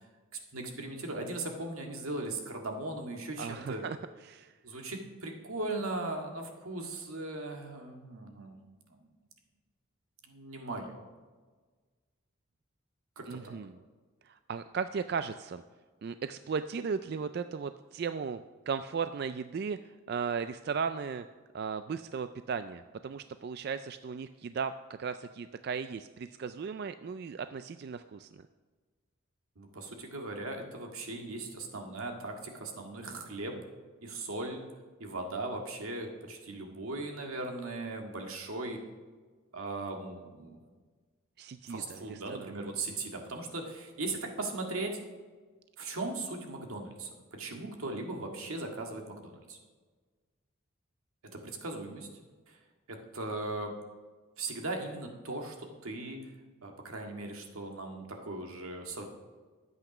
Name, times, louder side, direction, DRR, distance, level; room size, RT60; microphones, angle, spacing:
voice 1, 0.5-3.8 4.6-8.5 8.9-9.1 10.3-11.0 13.2-13.4 29.6-33.6 34.0-34.6 35.0-38.8 39.5-40.6 41.7-45.0 45.8-49.6 51.3-52.1 52.5-52.6 52.9-53.7 54.4-56.2 56.6-59.1, right 2 dB, 85° right, 2 dB, 1.8 m, -38 dB
voice 2, 3.4-4.0 4.2-4.5 13.3-13.7 14.2-15.6 16.0-21.3 21.5-28.3 41.4-42.5, right 6 dB, 50° right, 11 dB, 0.3 m, -36 dB
12.0 x 8.1 x 6.0 m, 1.4 s
head